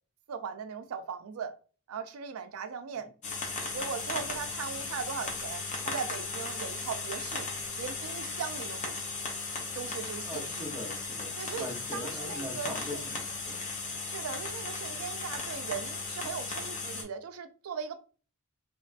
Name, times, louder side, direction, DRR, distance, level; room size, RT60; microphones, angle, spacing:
voice 1, 0.3-1.5 1.9-3.1 3.7-7.5 7.8-9.0 9.7-10.8 11.4-13.1 14.0-18.0, right 6 dB, 85° right, 0.4 m, -39 dB
sound 1, 3.2-17.0, left 3 dB, 35° left, 0.6 m, -36 dB
voice 2, 10.2-13.6, left 1 dB, 15° right, 0.6 m, -41 dB
2.9 x 2.2 x 2.4 m
head